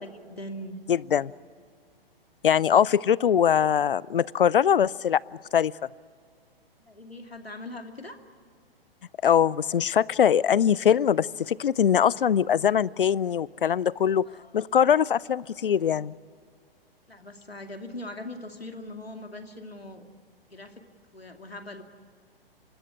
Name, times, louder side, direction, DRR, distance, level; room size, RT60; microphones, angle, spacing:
voice 1, 0.0-0.8 6.9-8.2 14.2-14.5 17.1-20.1 20.5-20.8 21.1-21.8, left 1 dB, 85° left, 6 dB, 2.5 m, -41 dB
voice 2, 0.9-1.3 2.4-5.2 5.5-5.7 9.2-14.3 14.5-16.1, left 8 dB, 65° left, 25 dB, 0.6 m, -22 dB
25.5 x 19.5 x 9.6 m, 2.1 s
figure-of-eight pair, 115°, 30 cm